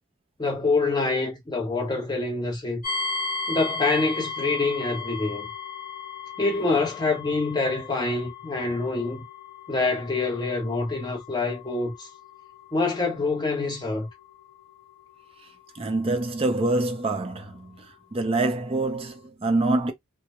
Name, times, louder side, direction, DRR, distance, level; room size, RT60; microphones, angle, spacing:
voice 1, 0.4-2.8 3.5-5.5 6.4-9.2 9.7-12.1 12.7-14.1, left 3 dB, 20° left, 0.8 m, -26 dB
sound 1, 2.8-17.7, left 4 dB, 45° left, 1.1 m, -37 dB
voice 2, 15.8-17.7 18.1-19.9, right 2 dB, 30° right, 0.4 m, -25 dB
2.2 x 2.0 x 2.8 m
head